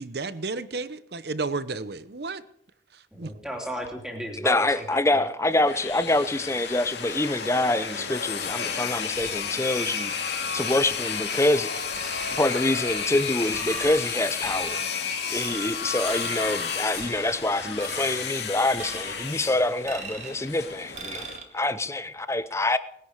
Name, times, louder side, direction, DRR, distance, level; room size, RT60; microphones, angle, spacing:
voice 1, 0.0-2.4 2.9-3.3, right 3 dB, 60° right, 0.9 m, -32 dB
voice 2, 3.1-5.3, equal, 5° right, 2.9 m, -34 dB
voice 3, 4.4-10.1 10.5-11.9 12.3-14.8 15.3-21.3 21.5-22.8, left 2 dB, 15° left, 0.6 m, -26 dB
sound 1, 5.4-21.4, left 6 dB, 65° left, 2.3 m, -32 dB
sound 2, 11.9-12.5 12.9-14.1 14.4-14.9 15.3-15.8 16.0-16.6 16.9-17.4 17.8-18.2 18.8-19.3 19.8-20.4 20.9-21.4, right 4 dB, 40° right, 2.1 m, -39 dB
20.5 x 10.5 x 6.6 m
head